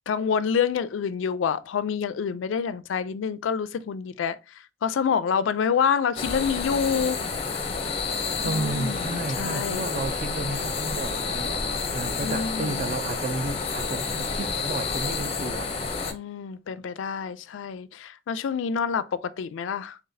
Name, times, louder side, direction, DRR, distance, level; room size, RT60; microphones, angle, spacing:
voice 1, 0.1-4.4 4.8-7.2 8.4-9.9 12.2-12.9 16.1-20.0, left 6 dB, 75° left, 0.3 m, -27 dB
sound 1, 6.2-16.1, left 4 dB, 30° left, 0.6 m, -29 dB
voice 2, 8.4-15.8, right 3 dB, 40° right, 0.4 m, -32 dB
3.9 x 3.5 x 2.6 m
head